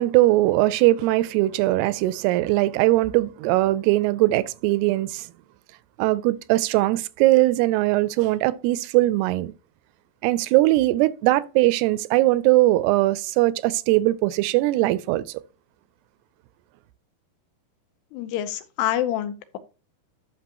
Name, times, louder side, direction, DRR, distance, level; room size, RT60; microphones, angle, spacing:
voice 1, 0.0-5.3 6.0-9.5 10.2-15.4, right 17 dB, 85° right, 2.5 m, -20 dB
voice 2, 18.1-19.6, left 12 dB, 90° left, 2.9 m, -27 dB
11.0 x 5.9 x 2.9 m
omnidirectional pair, 4.7 m